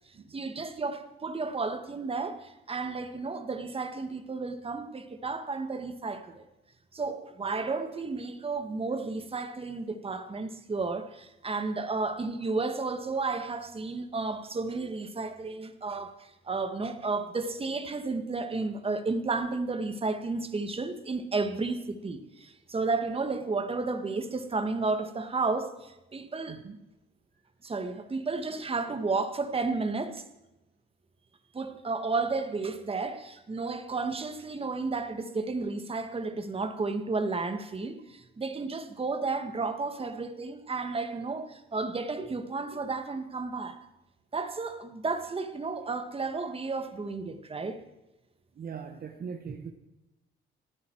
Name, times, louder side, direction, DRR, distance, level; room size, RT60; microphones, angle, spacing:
voice 1, 0.3-6.4 6.9-26.6 27.6-30.2 31.5-43.8 44.3-47.8, right 3 dB, 30° right, 1.7 m, -32 dB
voice 2, 48.6-49.7, right 6 dB, 50° right, 1.4 m, -40 dB
27.0 x 9.4 x 4.7 m
cardioid pair, 90°, 20 cm